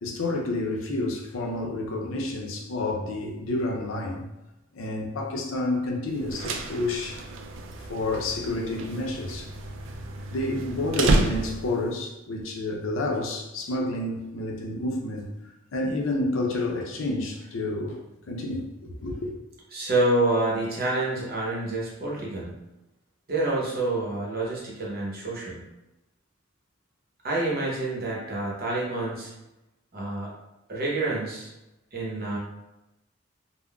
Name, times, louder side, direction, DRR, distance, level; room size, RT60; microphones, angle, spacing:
voice 1, 0.0-4.2 4.7-7.2 7.8-9.5 10.3-15.3 15.7-18.0 18.3-19.3, left 2 dB, 85° left, 0.5 m, -29 dB
sound 1, 6.2-11.9, right 2 dB, 75° right, 0.3 m, -30 dB
voice 2, 19.7-22.5 23.3-25.6 27.2-29.3 29.9-30.3 30.7-31.5 31.9-32.4, right 2 dB, 50° right, 0.8 m, -27 dB
3.6 x 2.1 x 2.2 m
head